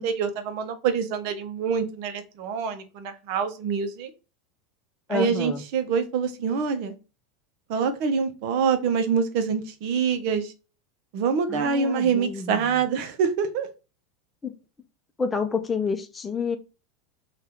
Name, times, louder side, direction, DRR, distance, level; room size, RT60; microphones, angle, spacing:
voice 1, 0.0-4.1 5.1-6.9 7.7-10.5 11.1-13.7, right 6 dB, 65° right, 8 dB, 0.6 m, -25 dB
voice 2, 5.1-5.6 11.5-12.8 14.4-14.5 15.2-16.6, left 5 dB, 20° left, 8 dB, 0.5 m, -29 dB
2.8 x 2.3 x 3.5 m, 0.31 s
hypercardioid pair, 95°, 0 cm